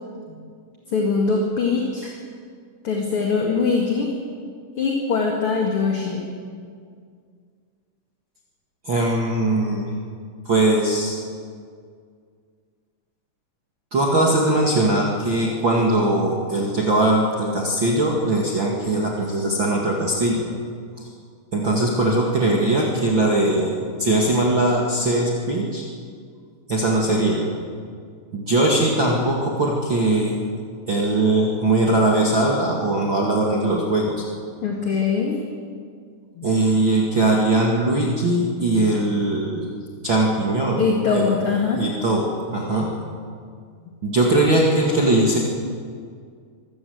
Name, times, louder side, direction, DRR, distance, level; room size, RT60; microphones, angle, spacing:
voice 1, 0.9-2.1 2.8-4.2 4.8-6.3 34.6-35.4 36.4-36.5 40.8-41.9, left 4 dB, 40° left, 0 dB, 2.5 m, -22 dB
voice 2, 8.9-9.9 10.5-11.2 13.9-20.5 21.5-25.8 26.7-27.5 28.3-30.4 30.9-34.2 36.4-39.6 40.0-40.8 41.1-41.2 41.8-42.9 44.0-45.4, right 2 dB, 40° right, -2 dB, 2.3 m, -20 dB
24.0 x 15.0 x 8.0 m, 2.1 s
omnidirectional pair, 4.3 m